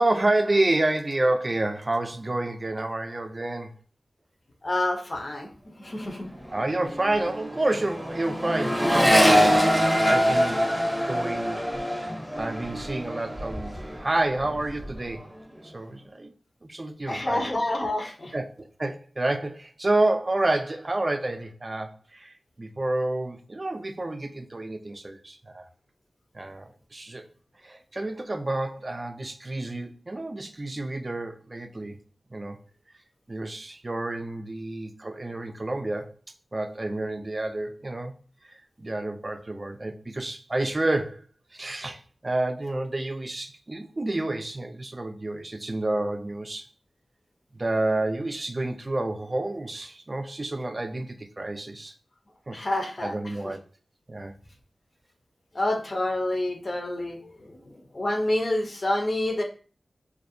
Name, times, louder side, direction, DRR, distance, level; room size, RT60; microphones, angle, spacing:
voice 1, 0.0-3.8 6.5-9.7 10.0-10.7 11.1-11.6 12.4-15.2 15.6-16.3 16.6-17.5 18.3-25.6 26.3-27.3 27.6-32.0 32.3-32.6 33.3-36.1 36.5-38.1 38.4-41.3 41.5-46.7 47.5-51.9 52.5-52.6 53.0-53.6 54.1-54.3, right 2 dB, 40° right, 0.4 m, -29 dB
voice 2, 4.6-5.5 5.8-6.3 17.1-18.3 52.5-53.1 53.4-53.5 55.5-57.6 57.9-59.4, left 1 dB, 50° left, 0.6 m, -28 dB
Accelerating revving vroom, 6.0-6.2 6.5-14.0 14.3-15.0, equal, ahead, 0.6 m, -24 dB
2.5 x 2.0 x 2.6 m
cardioid pair, 40°, 0 cm